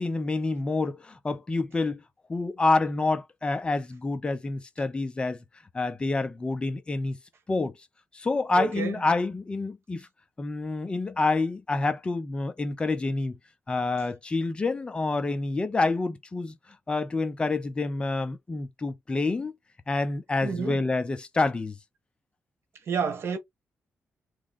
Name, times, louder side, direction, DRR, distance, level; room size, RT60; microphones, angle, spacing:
voice 1, 0.0-2.0 2.3-5.4 5.7-7.2 7.5-7.7 8.1-10.1 10.4-13.3 13.7-16.6 16.9-19.5 19.9-21.7, left 3 dB, 20° left, 0.7 m, -27 dB
voice 2, 8.6-9.0 20.4-20.8 22.9-23.4, right 5 dB, 65° right, 1.3 m, -29 dB
3.5 x 3.2 x 3.7 m
wide cardioid pair, 150°, 5 cm